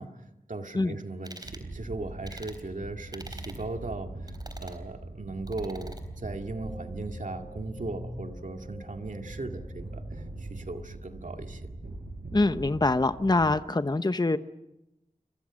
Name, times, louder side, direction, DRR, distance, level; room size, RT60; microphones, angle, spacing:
voice 1, 0.0-11.7 13.4-13.6, right 2 dB, 60° right, 5 dB, 2.2 m, -38 dB
sound 1, 1.2-1.7 2.3-2.6 3.1-3.6 4.3-4.8 5.5-6.0, right 1 dB, 30° right, 3.9 m, -45 dB
sound 2, 1.4-13.5, right 2 dB, 80° right, 6.8 m, -42 dB
sound 3, 6.2-10.8, left 1 dB, 10° left, 5.5 m, -47 dB
voice 2, 12.3-14.4, left 2 dB, 30° left, 11 dB, 0.8 m, -24 dB
29.0 x 25.5 x 6.3 m, 0.89 s
wide cardioid pair, 75°, 15 cm